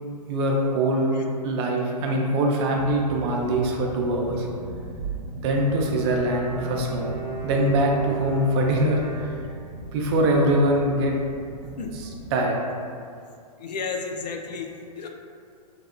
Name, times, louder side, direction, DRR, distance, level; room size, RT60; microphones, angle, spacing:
voice 1, 0.3-4.5 5.3-7.2 7.4-9.3 9.9-11.1 12.3-12.6, right 1 dB, 40° right, 0 dB, 0.5 m, -23 dB
voice 2, 0.9-1.2 4.9-5.0 11.6-12.2 13.0-13.2 13.6-15.1, left 4 dB, 75° left, 3 dB, 0.4 m, -34 dB
sound 1, 2.8-12.3, right 2 dB, 85° right, 0.7 m, -39 dB
Bowed string instrument, 5.5-9.9, right 4 dB, 5° right, 0.7 m, -35 dB
3.3 x 2.2 x 2.4 m, 2.3 s
hypercardioid pair, 120°, 21 cm